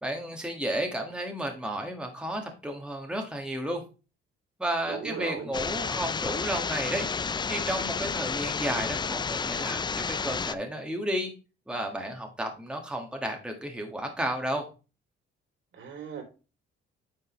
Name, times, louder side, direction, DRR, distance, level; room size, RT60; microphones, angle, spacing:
voice 1, 0.0-3.8 4.6-7.1 7.5-11.3 11.7-14.7, right 1 dB, 5° right, 2 dB, 1.7 m, -32 dB
voice 2, 4.9-5.5 15.8-16.2, right 7 dB, 65° right, 4 dB, 3.2 m, -37 dB
sound 1, 5.5-10.6, left 5 dB, 20° left, 0.4 m, -31 dB
9.5 x 5.3 x 3.2 m, 0.32 s
cardioid pair, 115°, 21 cm